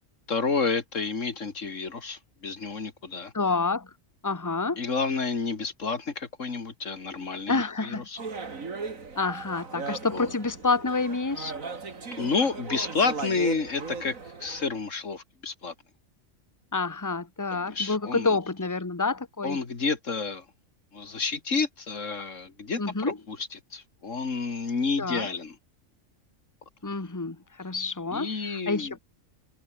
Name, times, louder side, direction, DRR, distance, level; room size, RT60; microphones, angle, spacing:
voice 1, 0.3-3.3 4.8-8.2 10.1-10.3 12.2-14.2 14.4-15.7 17.5-18.4 19.4-20.4 20.9-25.6 28.1-28.9, left 4 dB, 70° left, 2.7 m, -30 dB
voice 2, 3.3-3.9 4.2-4.8 7.5-8.1 9.2-11.5 16.7-19.6 22.8-23.2 25.0-25.3 26.8-29.0, left 3 dB, 15° left, 1.4 m, -28 dB
sound 1, 8.2-14.7, right 4 dB, 85° right, 2.9 m, -37 dB
omnidirectional pair, 1.4 m